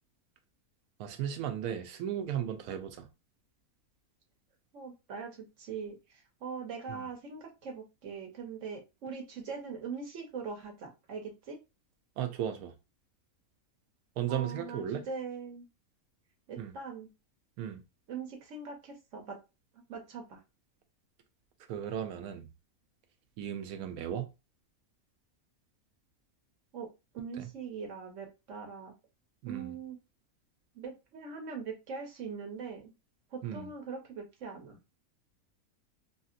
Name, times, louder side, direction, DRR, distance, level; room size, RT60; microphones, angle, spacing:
voice 1, 1.0-3.1 6.9-7.0 12.2-12.7 14.2-15.0 16.6-16.7 17.6-17.8 21.7-22.5 23.4-24.3 27.4-27.5 29.4-29.7 33.4-33.7, right 9 dB, 90° right, 1.1 m, -35 dB
voice 2, 4.7-11.6 14.3-15.7 16.5-17.1 18.1-19.4 19.7-20.4 26.7-26.9 27.1-28.9 29.5-30.0 30.7-32.9 33.3-34.8, right 5 dB, 60° right, 1.1 m, -41 dB
2.8 x 2.7 x 2.4 m
omnidirectional pair, 1.5 m